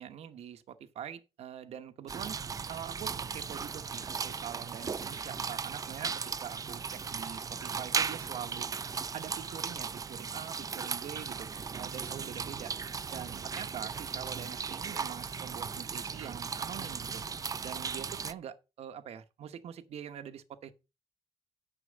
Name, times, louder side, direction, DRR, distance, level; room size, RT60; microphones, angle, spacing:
voice 1, 0.0-2.4 2.7-6.1 6.4-8.7 9.1-12.7 13.1-17.2 17.6-20.7, right 9 dB, 80° right, 1.1 m, -44 dB
sound 1, 2.1-18.3, right 5 dB, 35° right, 0.5 m, -37 dB
9.9 x 6.8 x 5.1 m
cardioid pair, 100°, 11 cm